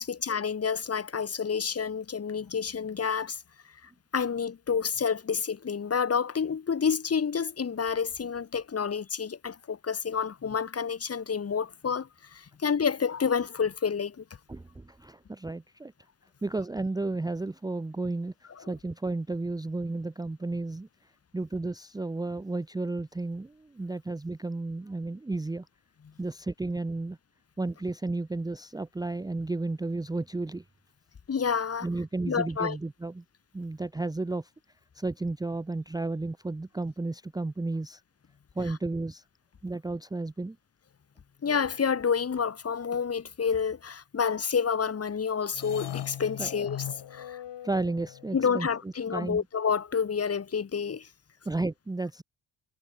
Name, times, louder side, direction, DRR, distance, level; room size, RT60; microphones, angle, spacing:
voice 1, 0.0-3.4 4.1-14.2 31.3-31.9 32.3-32.8 41.4-47.4 48.3-51.1, left 6 dB, 30° left, 1.9 m, -29 dB
voice 2, 14.5-15.9 16.4-18.3 18.6-20.9 21.3-25.7 26.2-27.2 27.6-30.6 31.8-33.2 33.5-34.5 34.9-38.0 38.5-39.2 39.6-40.6 46.4-46.5 47.6-49.4 51.5-52.2, right 2 dB, 10° right, 0.7 m, -33 dB
sound 1, 45.5-48.6, left 11 dB, 60° left, 5.0 m, -39 dB
cardioid pair, 110°, 46 cm